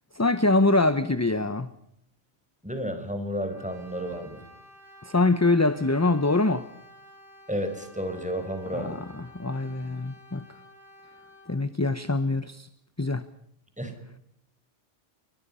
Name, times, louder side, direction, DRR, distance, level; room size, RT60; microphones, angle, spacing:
voice 1, 0.1-1.7 5.0-6.7 8.7-10.4 11.5-12.7 13.0-13.2, left 2 dB, 15° left, 12 dB, 0.7 m, -24 dB
voice 2, 2.6-4.4 7.5-9.0 13.8-13.9, equal, 5° right, 7 dB, 4.9 m, -32 dB
Brass instrument, 3.4-11.6, equal, 50° right, 7.7 m, -52 dB
28.0 x 24.5 x 5.6 m, 0.73 s
omnidirectional pair, 1.2 m